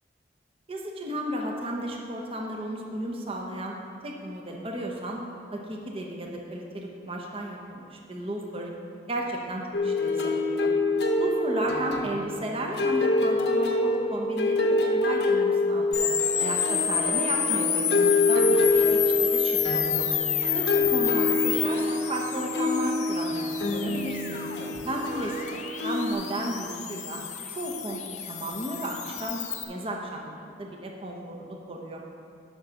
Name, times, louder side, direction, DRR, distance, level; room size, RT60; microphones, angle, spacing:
voice 1, 0.7-3.8 4.0-5.2 5.5-8.7 9.1-10.7 11.2-16.1 16.4-20.1 20.5-23.3 23.6-24.4 24.9-25.5 25.8-27.2 27.6-32.0, right 1 dB, 30° right, 0 dB, 1.0 m, -34 dB
sound 1, 9.7-26.1, left 2 dB, 75° left, 0.9 m, -26 dB
sound 2, 15.9-29.6, left 9 dB, 40° left, 0.7 m, -30 dB
8.1 x 5.9 x 6.3 m, 2.4 s
head